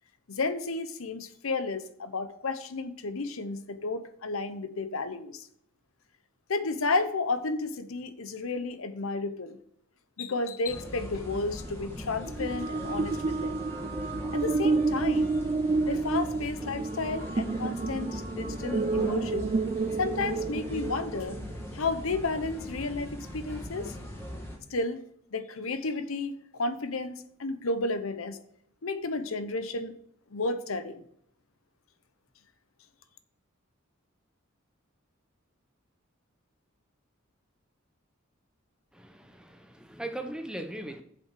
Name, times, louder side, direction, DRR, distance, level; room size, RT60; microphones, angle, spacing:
voice 1, 0.3-5.5 6.5-9.6 10.2-13.5 14.3-15.3 15.8-19.5 20.0-21.4 21.7-23.9 24.7-25.0 25.3-28.4 28.8-29.9 30.3-31.0, left 3 dB, 75° left, 0.8 m, -32 dB
sound 1, 10.7-24.6, left 1 dB, 10° left, 1.8 m, -40 dB
sound 2, 12.3-21.6, right 3 dB, 30° right, 0.4 m, -30 dB
voice 2, 38.9-41.0, right 1 dB, 5° right, 0.8 m, -39 dB
7.2 x 5.6 x 7.4 m
head